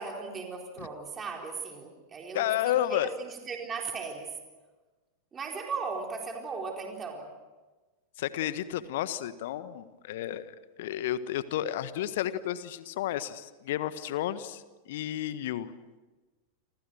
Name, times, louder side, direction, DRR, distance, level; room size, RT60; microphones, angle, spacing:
voice 1, 0.0-2.5 2.8-4.3 5.3-7.3, right 4 dB, 20° right, 1 dB, 4.2 m, -37 dB
voice 2, 2.3-3.1 8.2-10.5 10.8-15.7, left 12 dB, 55° left, 14 dB, 1.4 m, -31 dB
29.0 x 26.0 x 6.4 m, 1.2 s
figure-of-eight pair, 90°, 0 cm